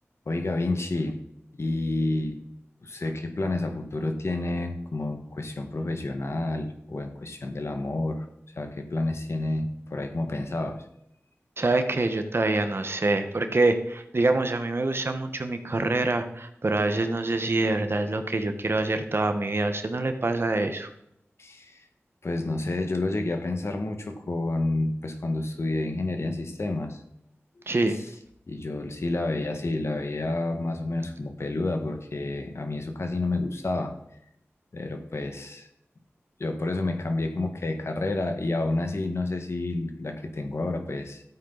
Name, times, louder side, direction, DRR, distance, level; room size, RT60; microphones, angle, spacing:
voice 1, 0.3-1.2 1.5-2.4 2.8-8.3 8.6-10.8 21.4-21.8 22.2-27.0 28.5-33.9 34.7-35.7 36.4-41.2, left 2 dB, 65° left, 5 dB, 1.7 m, -29 dB
voice 2, 11.6-20.9 27.7-28.0, right 2 dB, 55° right, 7 dB, 1.4 m, -25 dB
13.5 x 8.6 x 4.1 m, 0.76 s
cardioid pair, 40°, 5 cm